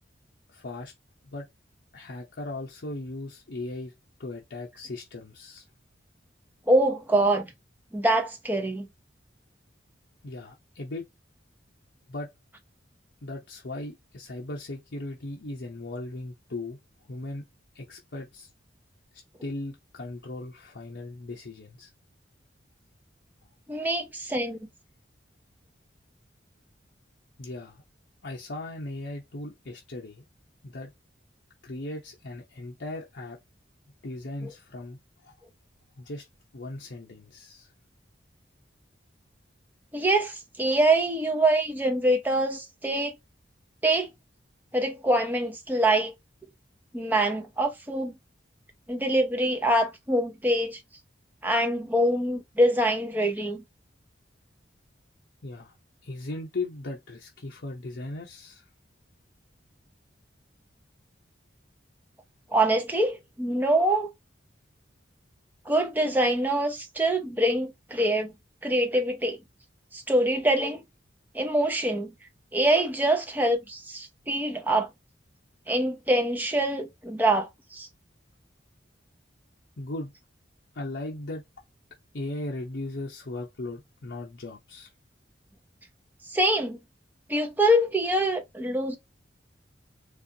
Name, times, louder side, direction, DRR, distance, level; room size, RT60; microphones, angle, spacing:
voice 1, 0.5-0.9 1.2-1.5 1.9-3.9 4.2-5.6 10.2-11.1 12.1-12.3 13.2-17.5 17.7-18.5 19.4-21.9 23.8-23.9 27.4-27.8 28.2-30.2 30.6-30.9 31.6-33.4 34.0-35.3 36.0-36.2 36.5-37.7 55.4-55.7 56.0-58.6 79.8-80.1 80.7-81.4 82.1-84.9, left 2 dB, 65° left, 0.7 m, -37 dB
voice 2, 6.7-7.5 7.9-8.9 23.7-24.6 39.9-43.1 43.8-44.1 44.7-46.1 46.9-48.1 48.9-50.8 51.4-53.6 62.5-64.1 65.7-68.3 68.6-69.4 69.9-70.8 71.3-72.1 72.5-74.9 75.7-77.9 86.3-86.8 87.3-89.0, right 1 dB, 10° right, 0.6 m, -24 dB
4.3 x 2.5 x 2.7 m
head